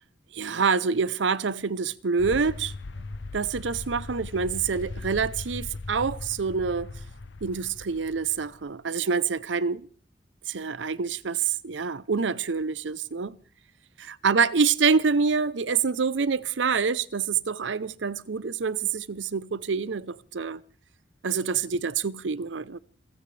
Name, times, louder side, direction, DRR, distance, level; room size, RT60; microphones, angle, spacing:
voice 1, 0.3-2.7 3.3-6.9 7.4-9.8 10.5-13.4 14.0-20.6 21.2-22.8, right 5 dB, 90° right, 0.7 m, -26 dB
sound 1, 2.2-8.7, left 3 dB, 85° left, 0.8 m, -39 dB
27.5 x 15.5 x 3.3 m
head